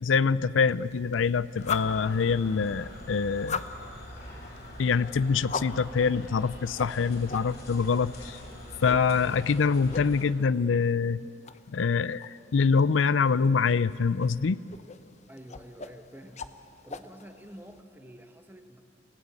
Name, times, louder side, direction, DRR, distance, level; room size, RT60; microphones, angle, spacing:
voice 1, 0.0-3.6 4.8-8.4 8.8-11.2 11.7-14.6, left 5 dB, 85° left, 18 dB, 0.5 m, -25 dB
sound 1, 0.7-17.8, left 5 dB, 35° left, 0.8 m, -42 dB
sound 2, 1.6-10.3, left 1 dB, 55° left, 6.6 m, -44 dB
voice 2, 15.3-16.4 16.8-18.8, equal, 10° right, 6 dB, 1.5 m, -48 dB
29.0 x 17.5 x 8.4 m, 2.5 s
head